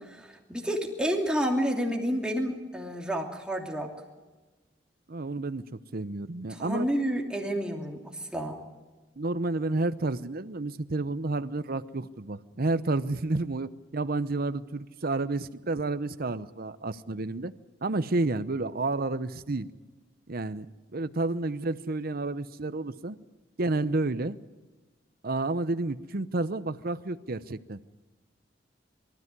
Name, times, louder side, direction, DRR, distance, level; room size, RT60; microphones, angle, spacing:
voice 1, 0.0-3.9 6.5-8.6, equal, 5° right, 0 dB, 2.9 m, -30 dB
voice 2, 5.1-5.6 5.9-6.9 9.2-17.5 17.8-19.7 20.3-20.7 20.9-23.2 23.6-24.4 25.2-27.8, right 2 dB, 55° right, 13 dB, 0.8 m, -30 dB
23.5 x 14.0 x 9.7 m, 1.3 s
head